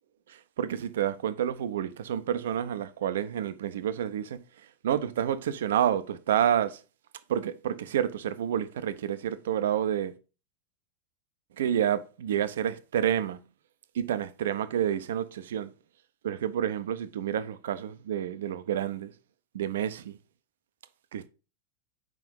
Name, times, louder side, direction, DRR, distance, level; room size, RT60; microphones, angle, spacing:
voice 1, 0.3-4.4 4.8-6.8 7.3-10.1 11.6-13.4 13.9-15.7 16.2-19.1 19.5-20.2 21.1-21.3, right 10 dB, 60° right, 0.5 m, -29 dB
4.9 x 3.7 x 5.2 m
figure-of-eight pair, 90°, 0 cm